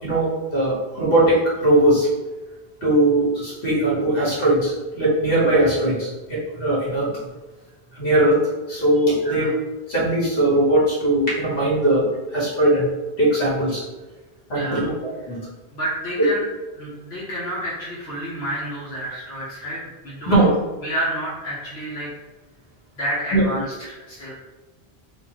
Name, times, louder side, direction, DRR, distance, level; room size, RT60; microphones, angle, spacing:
voice 1, 0.0-2.1 2.8-7.1 7.9-8.4 8.7-9.5 9.9-12.1 12.3-12.9 13.2-13.8 14.5-14.9 15.3-15.4 16.2-16.3 20.2-20.5 23.3-23.4, right 1 dB, 60° left, -6 dB, 1.7 m, -19 dB
voice 2, 9.2-9.5 14.5-14.9 15.3-15.4 15.7-16.4 16.8-20.4 20.8-22.1 22.9-24.3, right 1 dB, 85° left, -8 dB, 1.2 m, -30 dB
4.2 x 2.6 x 3.1 m, 1.2 s
omnidirectional pair, 1.1 m